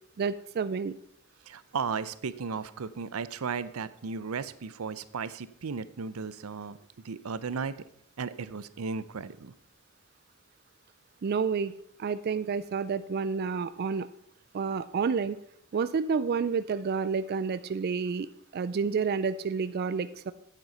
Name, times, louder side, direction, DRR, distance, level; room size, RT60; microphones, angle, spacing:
voice 1, 0.2-0.9 11.2-11.7 12.0-14.1 14.5-15.4 15.7-20.3, right 5 dB, 50° right, 14 dB, 0.4 m, -29 dB
voice 2, 1.5-6.8 7.0-7.8 8.2-9.5, right 5 dB, 90° right, 16 dB, 0.6 m, -35 dB
9.2 x 7.6 x 5.5 m, 0.69 s
head